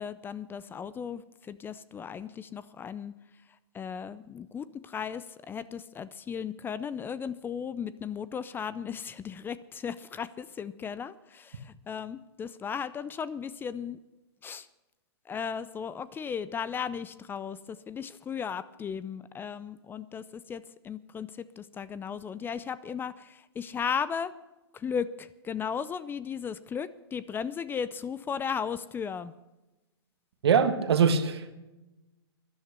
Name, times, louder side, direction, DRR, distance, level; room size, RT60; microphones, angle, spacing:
voice 1, 0.0-3.1 3.7-14.0 14.4-14.7 15.3-24.3 24.7-29.3, left 7 dB, 15° left, 0.5 m, -36 dB
voice 2, 30.4-31.5, right 6 dB, 70° right, 1.6 m, -23 dB
13.0 x 11.0 x 6.8 m
hypercardioid pair, 120°, 14 cm